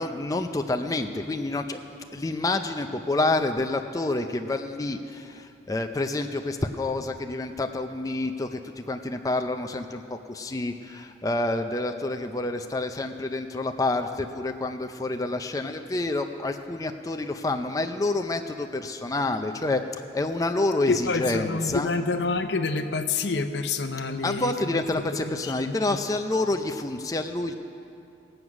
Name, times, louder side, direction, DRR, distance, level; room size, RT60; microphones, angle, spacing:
voice 1, 0.0-1.8 2.1-21.9 24.2-27.5, left 2 dB, 20° left, 6 dB, 0.4 m, -28 dB
voice 2, 20.9-24.7 25.2-26.0, left 3 dB, 70° left, 8 dB, 0.7 m, -28 dB
19.5 x 7.9 x 6.0 m, 2.6 s
head